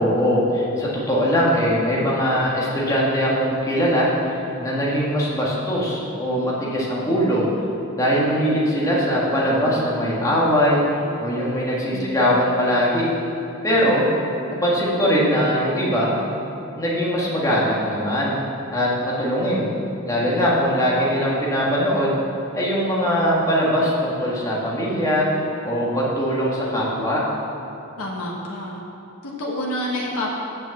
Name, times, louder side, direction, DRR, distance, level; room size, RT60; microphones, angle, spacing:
voice 1, 0.0-7.5 7.9-10.8 11.2-13.0 13.6-14.1 14.6-16.1 16.8-18.4 18.7-19.7 20.0-22.2 22.5-25.3 25.6-27.2, equal, 15° left, -6 dB, 1.7 m, -21 dB
voice 2, 11.9-12.4 28.0-28.8 29.2-30.3, left 1 dB, 75° left, -3 dB, 1.3 m, -29 dB
6.8 x 6.4 x 7.2 m, 2.8 s
head